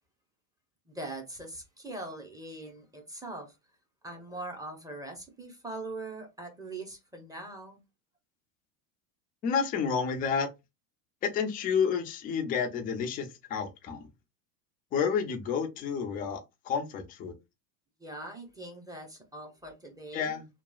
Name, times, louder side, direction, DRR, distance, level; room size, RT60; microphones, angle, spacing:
voice 1, 0.9-3.6 4.0-7.8 18.0-20.4, right 2 dB, 5° right, 0.6 m, -42 dB
voice 2, 9.4-10.5 11.2-14.1 14.9-17.3 20.1-20.4, left 6 dB, 20° left, 0.3 m, -30 dB
2.9 x 2.3 x 2.2 m
supercardioid pair, 120°, 50 cm